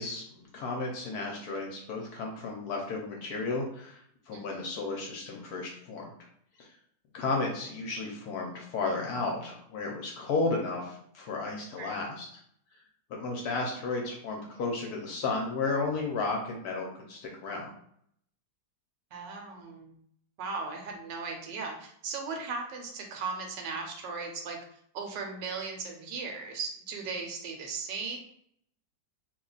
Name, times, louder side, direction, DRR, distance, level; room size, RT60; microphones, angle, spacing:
voice 1, 0.0-6.1 6.6-6.7 7.1-12.3 13.1-17.7, left 3 dB, 70° left, 0 dB, 1.0 m, -33 dB
voice 2, 4.3-4.7 11.8-12.1 19.1-20.0 20.4-24.6 24.9-28.2, right 4 dB, 75° right, 2 dB, 1.3 m, -37 dB
2.9 x 2.2 x 3.8 m, 0.66 s
omnidirectional pair, 2.0 m